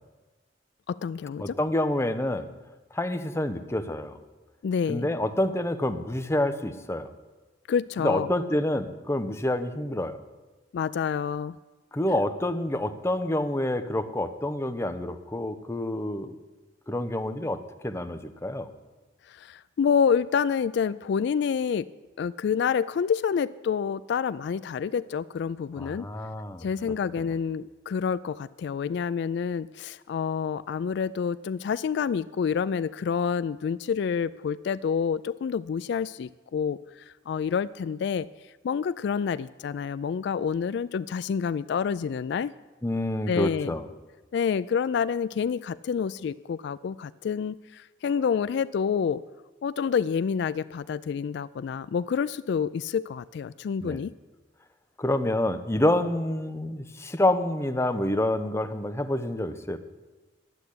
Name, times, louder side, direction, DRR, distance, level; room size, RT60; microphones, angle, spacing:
voice 1, 0.9-1.5 4.6-5.1 7.7-8.3 10.7-11.6 19.3-21.9 22.2-26.1 26.6-38.3 38.6-42.5 43.3-43.7 44.3-49.2 49.6-54.1, left 6 dB, 65° left, 15 dB, 0.3 m, -28 dB
voice 2, 1.4-2.5 2.9-4.2 4.9-7.1 8.0-10.2 11.9-16.4 16.9-18.7 25.8-27.3 42.8-43.9 53.8-54.0 55.0-59.8, left 1 dB, 15° left, 7 dB, 0.8 m, -28 dB
11.0 x 8.0 x 10.0 m, 1.2 s
head